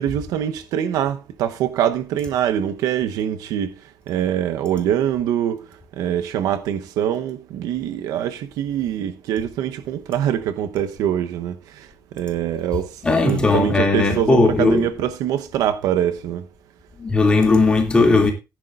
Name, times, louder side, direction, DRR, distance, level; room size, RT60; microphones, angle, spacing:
voice 1, 0.0-3.7 4.1-5.6 6.0-11.6 12.1-12.9 13.2-16.4, right 10 dB, 80° right, 1.0 m, -23 dB
voice 2, 13.0-14.9 17.0-18.3, left 3 dB, 15° left, 2.5 m, -17 dB
15.0 x 10.5 x 2.5 m
cardioid pair, 180°, 6 cm